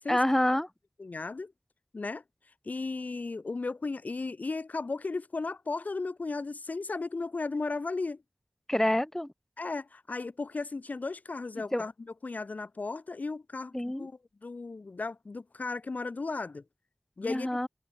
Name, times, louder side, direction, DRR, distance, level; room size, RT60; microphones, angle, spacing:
voice 1, 0.1-0.7 8.7-9.3 11.7-11.8 13.7-14.1 17.2-17.7, left 1 dB, 15° left, 0.9 m, -27 dB
voice 2, 1.0-1.5 1.9-8.2 9.6-11.9 12.2-13.7 14.0-16.6 17.2-17.5, left 3 dB, 80° left, 1.0 m, -35 dB
wide cardioid pair, 55°, 3 cm